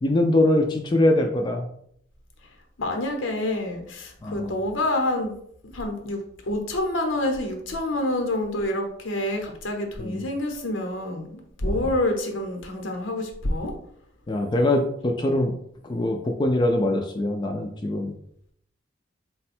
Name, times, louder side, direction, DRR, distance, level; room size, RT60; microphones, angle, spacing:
voice 1, 0.0-1.7 4.2-4.5 10.0-10.2 11.6-11.9 14.3-15.5 15.9-18.1, left 1 dB, 25° left, 2 dB, 0.3 m, -23 dB
voice 2, 2.8-5.4 5.7-6.2 6.5-13.7, left 1 dB, 85° left, 3 dB, 0.9 m, -27 dB
4.1 x 2.2 x 4.2 m, 0.69 s
head